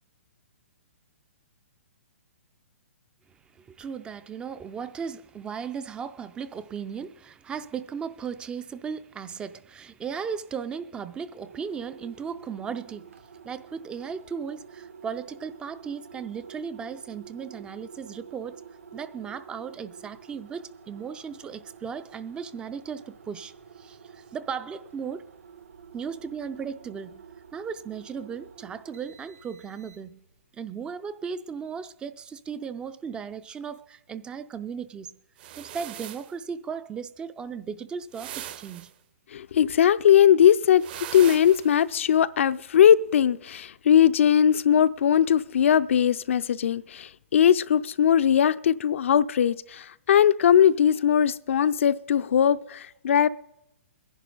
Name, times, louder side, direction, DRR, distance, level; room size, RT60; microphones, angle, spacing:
voice 1, 3.6-13.1 13.4-18.6 18.9-25.3 25.9-27.2 27.5-30.2 30.5-35.1 35.6-38.9, right 6 dB, 10° right, 0.4 m, -36 dB
sound 1, 11.3-30.3, right 7 dB, 80° right, 1.9 m, -49 dB
sound 2, 35.4-36.3 38.1-38.9 40.8-41.8, right 12 dB, 45° right, 0.8 m, -40 dB
voice 2, 39.3-40.8 41.1-53.3, left 9 dB, 65° left, 0.5 m, -20 dB
21.0 x 11.0 x 3.9 m
hypercardioid pair, 145°, 7 cm